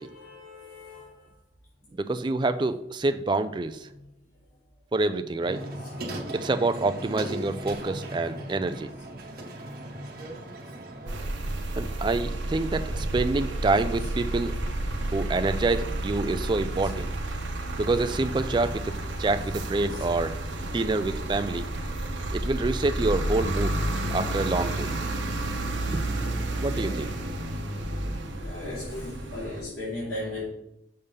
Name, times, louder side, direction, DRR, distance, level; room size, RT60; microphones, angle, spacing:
voice 1, 0.0-1.3 3.9-4.0 5.7-5.9 11.4-11.5 14.0-14.1 16.8-16.9 19.9-20.1 26.7-27.0 28.4-30.5, left 2 dB, 80° left, -9 dB, 2.7 m, -37 dB
voice 2, 2.0-3.9 4.9-5.7 6.3-9.2 11.8-14.5 15.1-17.1 17.8-18.9 19.2-21.7 22.3-23.8 24.1-24.9 25.9-26.1 26.6-27.1, right 3 dB, 25° right, 11 dB, 0.3 m, -27 dB
sound 1, 5.4-11.2, right 1 dB, 50° right, 1.0 m, -38 dB
sound 2, 11.1-29.6, right 1 dB, 75° right, 0.8 m, -31 dB
6.6 x 3.5 x 5.5 m, 0.81 s
head